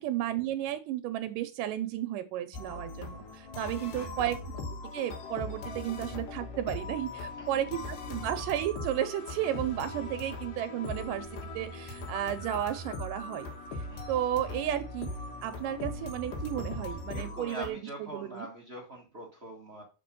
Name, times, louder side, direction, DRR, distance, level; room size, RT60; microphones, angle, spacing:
voice 1, 0.0-4.4 4.9-11.3 11.5-13.5 14.1-15.1 15.4-18.5, right 11 dB, 85° right, 11 dB, 2.3 m, -33 dB
sound 1, 2.5-17.7, left 2 dB, 80° left, 3.0 m, -40 dB
voice 2, 4.0-4.3 7.4-7.6 9.9-10.0 13.9-14.1 17.1-19.8, equal, 50° right, -1 dB, 0.7 m, -44 dB
sound 2, 8.7-12.4 13.3-16.8, left 3 dB, 60° left, 3.6 m, -57 dB
6.7 x 4.8 x 5.2 m, 0.31 s
omnidirectional pair, 3.8 m